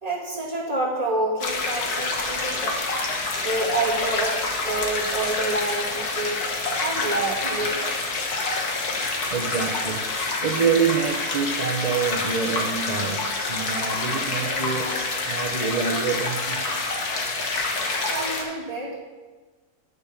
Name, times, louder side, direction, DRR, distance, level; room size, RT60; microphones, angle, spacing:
voice 1, 0.0-2.8 3.4-6.4 6.8-7.8 18.1-19.0, right 2 dB, 25° right, -4 dB, 2.3 m, -28 dB
sound 1, 1.4-18.4, left 3 dB, 85° left, 1.9 m, -27 dB
voice 2, 9.3-10.1 10.4-14.9 15.3-16.7, right 6 dB, 40° right, 2 dB, 0.6 m, -26 dB
10.5 x 6.7 x 5.9 m, 1.3 s
omnidirectional pair, 1.6 m